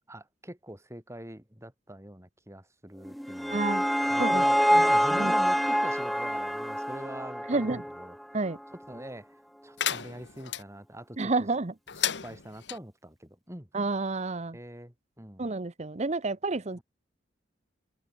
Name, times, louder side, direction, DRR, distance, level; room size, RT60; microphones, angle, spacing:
voice 1, 0.1-3.6 4.1-8.2 8.9-9.3 9.6-11.5 12.2-13.7 14.5-15.4 16.8-16.9, right 1 dB, 15° right, 8.0 m, -44 dB
sound 1, 3.1-8.2, equal, ahead, 1.0 m, -26 dB
voice 2, 3.5-3.8 4.2-4.4 4.7-5.3 7.5-7.8 8.3-8.6 11.2-11.7 13.7-14.6 15.4-16.8, right 3 dB, 40° right, 0.9 m, -30 dB
sound 2, 9.8-10.6 11.9-12.8, left 10 dB, 70° left, 1.2 m, -32 dB
head